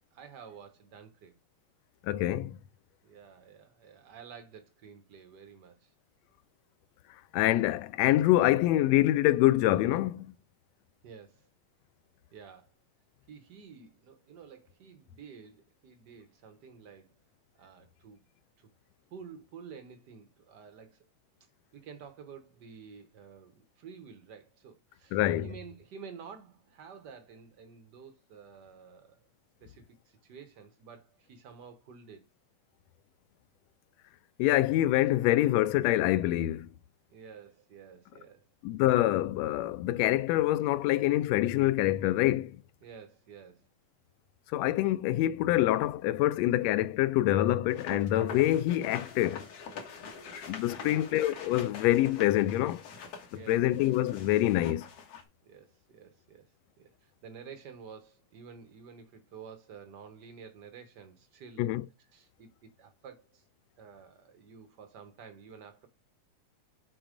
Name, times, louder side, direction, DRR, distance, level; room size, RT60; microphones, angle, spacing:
voice 1, 0.1-1.3 3.0-5.9 11.0-11.5 12.3-12.7 13.3-17.1 17.5-18.2 18.6-18.7 19.1-21.0 21.7-29.3 29.6-32.3 37.1-38.4 42.8-43.7 50.7-51.1 53.3-53.6 55.4-56.4 56.8-61.7 62.1-63.4 63.8-65.9, right 6 dB, 80° right, 0.9 m, -50 dB
voice 2, 2.0-2.6 7.3-10.3 25.1-25.5 34.4-36.7 38.6-42.6 44.5-49.5 50.5-52.8 53.5-54.9 61.6-61.8, left 15 dB, 80° left, 1.7 m, -26 dB
sound 1, 47.7-55.2, left 5 dB, 60° left, 2.2 m, -44 dB
7.0 x 3.8 x 5.0 m
omnidirectional pair, 3.3 m